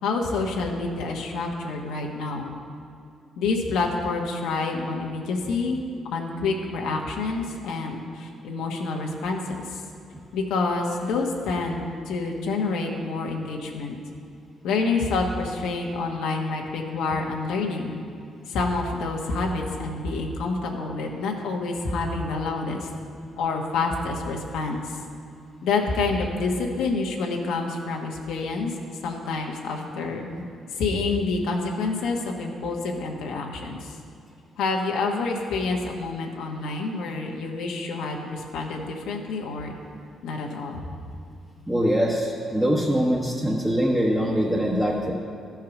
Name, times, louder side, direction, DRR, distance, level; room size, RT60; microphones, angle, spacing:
voice 1, 0.0-2.5 3.4-5.8 6.1-9.8 10.3-14.0 14.6-18.0 18.5-22.9 23.4-25.0 25.6-28.7 29.0-30.3 30.8-33.9 34.6-39.7 40.2-40.8, left 3 dB, 85° left, 1 dB, 1.2 m, -28 dB
voice 2, 41.7-45.1, equal, 15° right, -4 dB, 1.2 m, -23 dB
13.5 x 4.7 x 5.9 m, 2.4 s
cardioid pair, 90°, 0 cm